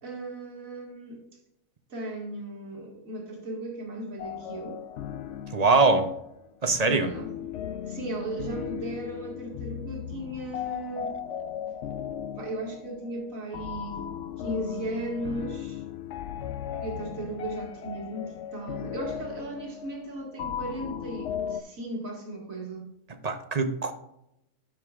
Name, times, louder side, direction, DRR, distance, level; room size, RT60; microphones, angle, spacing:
voice 1, 0.0-1.2 1.9-4.8 6.9-7.3 7.8-11.1 12.3-14.1 14.4-15.8 16.8-22.9, right 1 dB, 75° right, 2.4 m, -36 dB
sound 1, 4.2-21.6, left 9 dB, 65° left, 0.8 m, -37 dB
voice 2, 5.5-6.1 6.6-7.1 23.2-23.9, right 3 dB, 40° right, 0.7 m, -22 dB
12.5 x 6.5 x 2.4 m
omnidirectional pair, 1.4 m